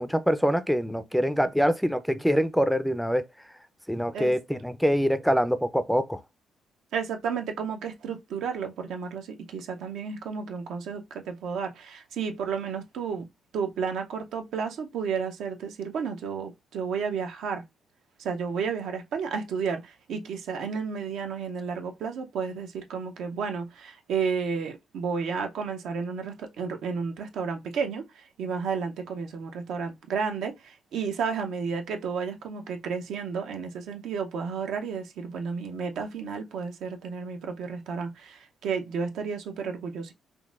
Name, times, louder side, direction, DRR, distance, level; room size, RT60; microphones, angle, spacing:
voice 1, 0.0-3.3 3.9-6.2, equal, ahead, 0.4 m, -24 dB
voice 2, 6.9-13.3 13.5-17.6 18.2-40.1, right 6 dB, 75° right, 0.6 m, -32 dB
3.8 x 2.5 x 2.4 m
cardioid pair, 90°, 0 cm